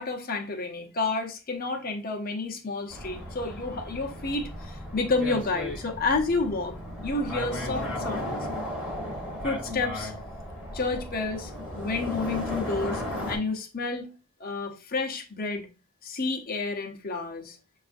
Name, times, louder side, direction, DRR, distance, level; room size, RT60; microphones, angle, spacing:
voice 1, 0.0-6.8 7.0-8.4 9.4-10.1 10.7-14.1 14.4-15.7 16.0-17.6, left 3 dB, 45° left, 0.8 m, -30 dB
sound 1, 2.9-13.4, left 1 dB, 5° right, 1.1 m, -35 dB
6.9 x 2.4 x 2.5 m
head